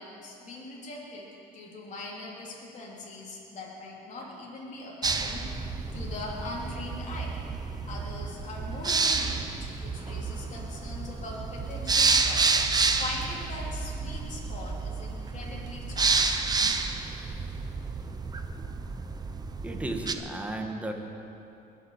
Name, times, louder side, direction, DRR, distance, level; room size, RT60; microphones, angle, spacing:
voice 1, 0.0-7.4 7.9-12.5 13.0-16.5, left 2 dB, 45° left, -4 dB, 3.3 m, -41 dB
sound 1, 5.0-20.1, right 4 dB, 25° right, 0.9 m, -29 dB
voice 2, 19.6-20.9, right 1 dB, 10° right, 2 dB, 1.7 m, -34 dB
21.5 x 7.3 x 7.4 m, 2.8 s
cardioid pair, 110°, 17 cm